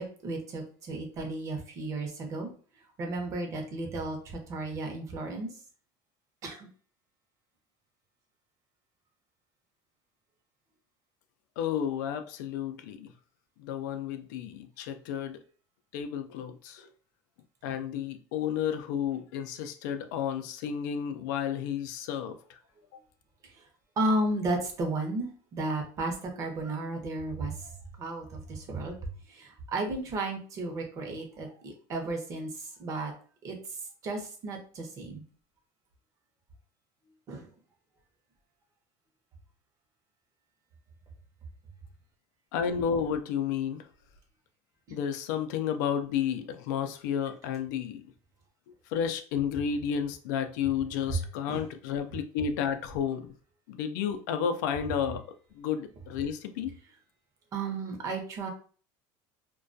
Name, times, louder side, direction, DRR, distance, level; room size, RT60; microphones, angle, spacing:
voice 1, 0.0-2.5 3.0-5.5 6.4-6.7 17.6-17.8 24.0-33.1 33.4-33.6 34.0-35.2 37.3-37.5 44.9-45.0 51.1-51.2 51.5-51.7 57.5-58.5, right 2 dB, 35° right, 0.7 m, -34 dB
voice 2, 11.6-13.1 13.6-15.4 15.9-16.9 17.6-22.4 42.5-43.8 44.9-48.1 48.9-53.3 53.7-55.2 55.6-56.7, left 8 dB, 90° left, 0.4 m, -31 dB
2.2 x 2.2 x 2.5 m
cardioid pair, 140°, 10 cm